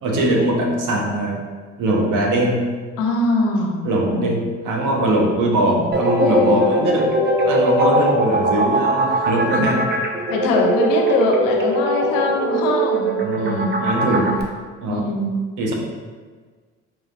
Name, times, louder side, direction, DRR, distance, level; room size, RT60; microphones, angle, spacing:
voice 1, 0.0-1.5 1.8-2.7 3.8-7.1 7.4-9.9 13.2-14.3 14.8-15.1 15.6-15.7, right 1 dB, 65° right, 0 dB, 0.9 m, -21 dB
voice 2, 3.0-4.3 6.2-6.6 10.3-14.3 14.9-15.5, left 2 dB, 80° left, 1 dB, 0.7 m, -22 dB
sound 1, 5.9-14.4, right 1 dB, 30° right, 0.7 m, -20 dB
4.6 x 2.8 x 2.5 m, 1.5 s
hypercardioid pair, 55°, 34 cm